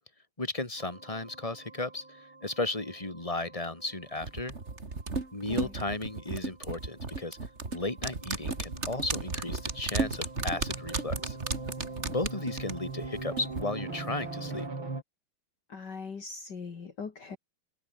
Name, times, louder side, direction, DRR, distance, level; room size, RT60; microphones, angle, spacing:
voice 1, 0.4-4.5 5.3-7.4 7.7-11.4 12.0-14.7, left 2 dB, 15° left, 3.9 m, -35 dB
sound 1, 0.8-15.0, right 3 dB, 65° right, 6.3 m, -43 dB
sound 2, 4.2-13.6 13.9-14.0, right 3 dB, 30° right, 2.9 m, -34 dB
voice 2, 15.7-17.4, left 5 dB, 55° left, 2.8 m, -40 dB
omnidirectional pair, 2.3 m